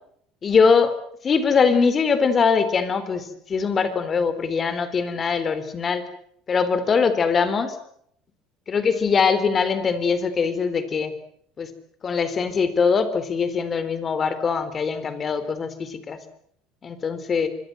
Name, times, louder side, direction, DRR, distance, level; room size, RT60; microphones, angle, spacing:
voice 1, 0.4-0.9 1.2-6.0 6.5-7.8 8.7-11.1 11.6-11.7 12.0-16.2 16.8-17.5, left 5 dB, 30° left, 13 dB, 3.8 m, -22 dB
25.5 x 23.0 x 7.8 m, 0.68 s
cardioid pair, 125°, 0 cm